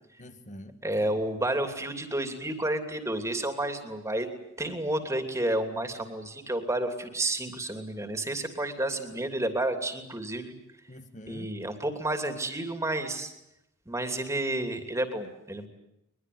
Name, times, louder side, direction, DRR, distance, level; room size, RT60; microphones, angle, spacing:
voice 1, 0.2-1.1 10.9-11.5, equal, 35° left, 8 dB, 1.9 m, -46 dB
voice 2, 0.8-4.3 4.6-10.5 11.3-13.3 13.9-15.7, right 1 dB, 15° right, 7 dB, 2.9 m, -30 dB
23.0 x 22.5 x 9.5 m, 0.83 s
head